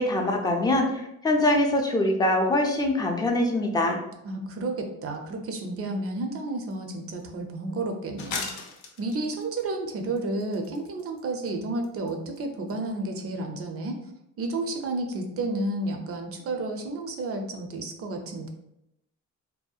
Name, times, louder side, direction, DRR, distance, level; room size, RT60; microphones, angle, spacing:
voice 1, 0.0-4.0, left 1 dB, 15° left, 1 dB, 0.4 m, -23 dB
voice 2, 4.2-8.4 9.0-14.0 14.4-18.5, right 2 dB, 50° right, 4 dB, 0.5 m, -31 dB
sound 1, 6.7-6.8 7.2-7.3 8.2-9.6 10.2-11.2 11.5-11.6 11.8-12.1 12.4-12.5 12.7-12.8, left 4 dB, 70° left, 0.5 m, -36 dB
2.7 x 2.1 x 2.3 m, 0.82 s
cardioid pair, 90°, 30 cm